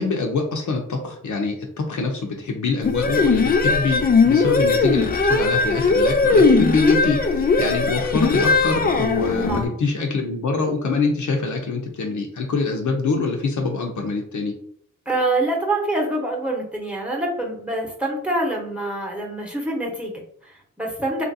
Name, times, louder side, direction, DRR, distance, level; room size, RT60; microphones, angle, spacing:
voice 1, 0.0-14.5, left 4 dB, 65° left, 2 dB, 0.6 m, -24 dB
sound 1, 2.9-9.6, left 4 dB, 30° left, 0.4 m, -18 dB
voice 2, 15.1-21.2, right 2 dB, 5° right, -1 dB, 0.9 m, -26 dB
2.9 x 2.5 x 2.7 m, 0.64 s
cardioid pair, 60°, 32 cm